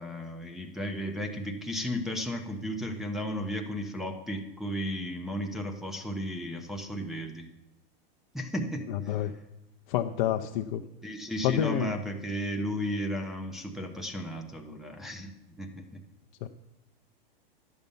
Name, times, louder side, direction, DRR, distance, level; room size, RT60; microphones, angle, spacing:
voice 1, 0.0-7.5 8.3-9.2 11.0-15.3 15.6-16.0, equal, ahead, 0 dB, 0.7 m, -34 dB
voice 2, 8.9-9.4 9.9-10.8 11.4-11.9 16.4-16.5, left 11 dB, 55° left, 5 dB, 0.6 m, -28 dB
11.0 x 7.0 x 5.3 m, 0.91 s
supercardioid pair, 150°, 29 cm